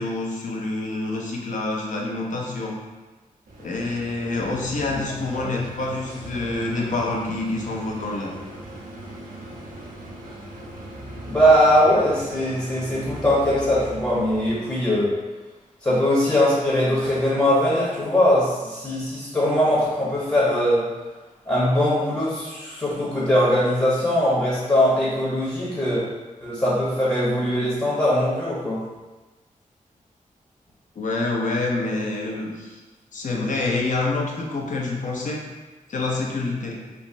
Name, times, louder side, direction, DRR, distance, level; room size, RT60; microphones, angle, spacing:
voice 1, 0.0-2.8 3.6-8.3 31.0-32.8 33.1-35.4 35.9-36.8, left 2 dB, 65° left, -1 dB, 0.6 m, -27 dB
sound 1, 3.5-14.8, right 1 dB, 80° right, 0.6 m, -39 dB
voice 2, 11.3-15.1 15.8-20.8 21.5-26.0 26.4-28.8, equal, 25° left, -8 dB, 0.9 m, -21 dB
3.3 x 2.0 x 2.5 m, 1.2 s
wide cardioid pair, 80°, 14 cm